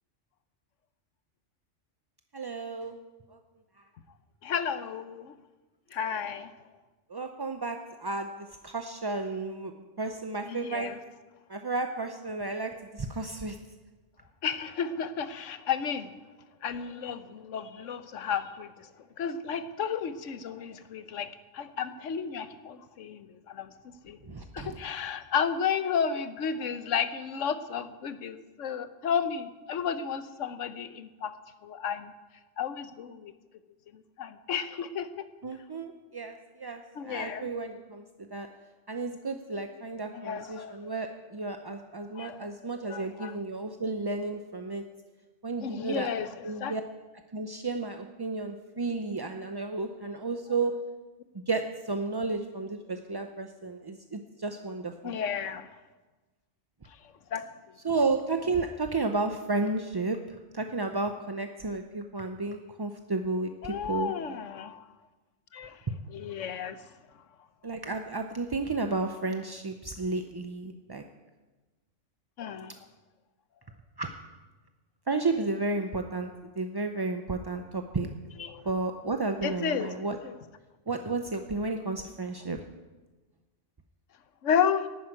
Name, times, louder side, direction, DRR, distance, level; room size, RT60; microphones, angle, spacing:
voice 1, 2.3-2.9 3.3-3.4 7.1-10.9 11.5-13.6 24.3-24.8 35.4-38.5 38.9-44.8 45.4-46.1 46.4-46.8 47.3-50.8 51.5-55.1 57.8-64.1 67.6-71.0 74.0-74.1 75.1-76.3 76.6-78.1 78.6-80.2 80.9-82.6, right 3 dB, 30° right, 6 dB, 0.4 m, -32 dB
voice 2, 4.4-5.4 5.9-6.5 10.5-11.0 14.4-16.1 16.6-18.9 19.2-23.7 24.0-24.2 24.5-31.3 31.6-32.1 32.6-33.3 33.9-35.3 37.0-37.5 40.1-40.8 42.1-42.5 42.9-43.3 45.6-46.3 46.6-46.8 55.0-55.7 57.3-57.5 63.6-64.9 65.5-65.8 66.1-66.8 72.4-72.7 78.4-78.6 79.4-79.9 80.2-80.3 84.4-84.9, left 7 dB, 90° left, 11 dB, 1.2 m, -32 dB
12.0 x 9.2 x 8.8 m, 1.2 s
omnidirectional pair, 1.2 m